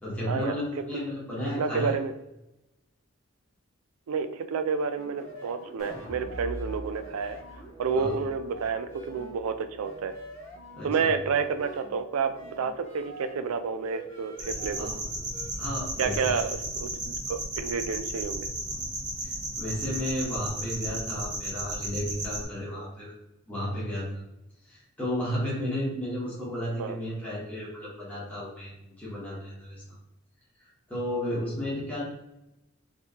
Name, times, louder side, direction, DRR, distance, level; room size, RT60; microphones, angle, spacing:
voice 1, 0.0-1.9 7.9-8.1 10.7-11.1 14.8-14.9 15.6-16.4 18.7-18.8 19.2-23.1 23.5-24.1 24.6-30.0 30.6-32.0, equal, 5° left, -8 dB, 1.0 m, -33 dB
voice 2, 1.6-2.1 4.1-7.4 7.8-10.1 10.8-14.9 16.0-18.5 26.8-27.0, right 5 dB, 85° right, 9 dB, 0.4 m, -30 dB
sound 1, 5.0-15.5, right 2 dB, 70° left, 0.8 m, -46 dB
sound 2, 5.8-12.0 12.4-12.5, equal, 85° left, 1.1 m, -44 dB
sound 3, 14.4-22.4, right 1 dB, 35° right, 0.9 m, -34 dB
2.8 x 2.7 x 3.5 m, 0.91 s
head